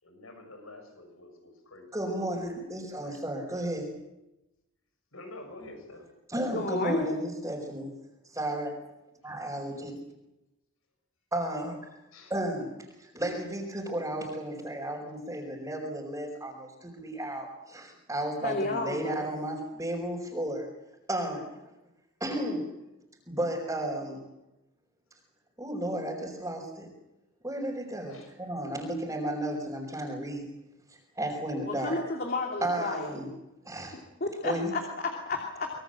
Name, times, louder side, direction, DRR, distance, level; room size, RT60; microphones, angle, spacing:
voice 1, 0.0-2.2 2.9-3.2 5.1-6.1 9.2-9.3 12.1-12.3 28.1-28.3, left 2 dB, 90° left, 6 dB, 7.1 m, -48 dB
voice 2, 1.9-3.9 6.3-7.9 8.3-8.7 9.2-9.9 11.3-11.8 12.3-12.7 13.0-20.7 21.1-21.4 22.2-22.7 23.3-24.2 25.6-26.9 27.4-30.5 30.9-32.0 32.6-33.3 33.6-34.0 34.4-34.7, right 1 dB, 15° right, -4 dB, 4.7 m, -33 dB
voice 3, 6.5-7.1 18.4-19.3 31.6-33.1 34.2-35.7, left 2 dB, 45° left, 2 dB, 2.9 m, -31 dB
25.0 x 23.0 x 7.8 m, 0.96 s
head